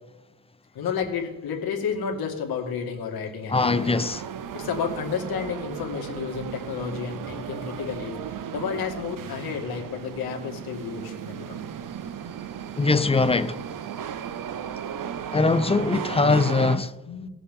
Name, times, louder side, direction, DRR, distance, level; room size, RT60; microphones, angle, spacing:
voice 1, 0.7-3.9 4.5-8.2 8.5-11.6 15.2-15.4 17.1-17.3, left 6 dB, 85° left, 2.0 m, -31 dB
voice 2, 3.5-4.2 12.8-13.5 15.3-16.9, left 3 dB, 15° left, 0.6 m, -21 dB
sound 1, 3.6-16.8, right 9 dB, 60° right, 0.7 m, -35 dB
18.0 x 6.8 x 3.6 m
cardioid pair, 85°, 36 cm